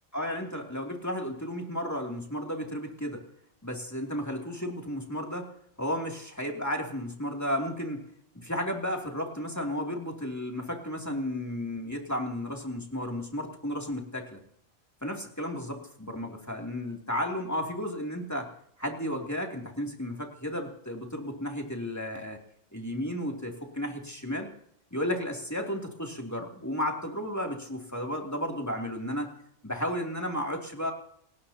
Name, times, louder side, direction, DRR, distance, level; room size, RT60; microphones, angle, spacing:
voice 1, 0.1-3.2 3.6-5.5 5.8-8.1 8.3-14.4 15.0-18.5 18.8-22.4 22.7-24.5 24.9-29.3 29.6-30.9, equal, 15° left, 1 dB, 2.7 m, -33 dB
29.5 x 16.0 x 2.9 m, 0.68 s
omnidirectional pair, 1.3 m